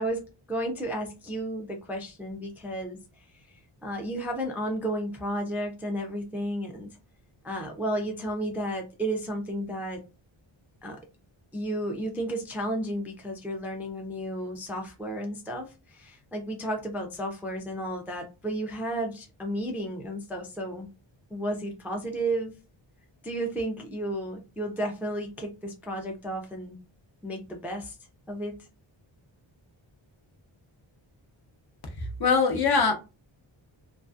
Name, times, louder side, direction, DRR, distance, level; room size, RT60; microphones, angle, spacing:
voice 1, 0.0-3.0 3.8-6.9 7.4-10.0 10.8-11.0 11.5-20.9 21.3-22.5 23.2-26.8 27.2-27.9 28.3-28.5, right 1 dB, 5° right, 0.3 m, -32 dB
voice 2, 32.0-32.9, left 5 dB, 50° left, 0.7 m, -23 dB
2.5 x 2.4 x 2.4 m
wide cardioid pair, 135°, 49 cm